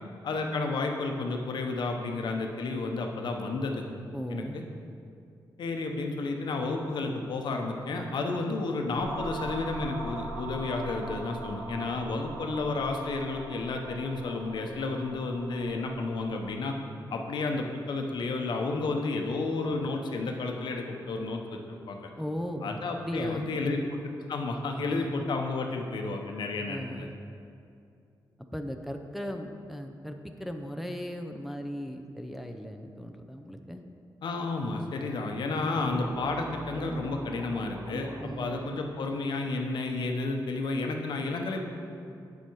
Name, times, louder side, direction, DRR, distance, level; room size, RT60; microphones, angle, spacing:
voice 1, 0.2-3.8 4.3-4.6 5.6-16.7 17.1-21.6 21.9-22.1 22.6-24.0 24.3-27.1 34.2-38.1 38.4-41.6, left 3 dB, 75° left, 3 dB, 1.0 m, -31 dB
voice 2, 4.1-4.6 22.2-23.8 24.7-25.2 26.7-27.1 28.5-33.8 35.6-36.0 38.2-38.8, equal, ahead, 4 dB, 0.6 m, -37 dB
sound 1, 8.9-16.6, right 2 dB, 70° right, 1.8 m, -41 dB
sound 2, 35.7-38.9, right 2 dB, 45° right, 0.9 m, -42 dB
8.3 x 7.2 x 4.7 m, 2.5 s
cardioid pair, 90°, 8 cm